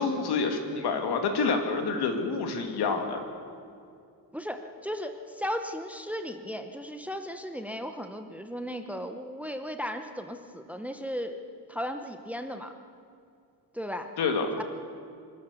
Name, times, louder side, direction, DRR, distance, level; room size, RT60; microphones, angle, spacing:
voice 1, 0.0-3.2 14.2-14.5, left 4 dB, 70° left, 5 dB, 2.6 m, -27 dB
voice 2, 4.3-11.4 11.7-12.7 13.7-14.1 14.5-14.6, equal, 5° right, 7 dB, 0.9 m, -36 dB
25.5 x 13.0 x 8.2 m, 2.4 s
cardioid pair, 155°, 40 cm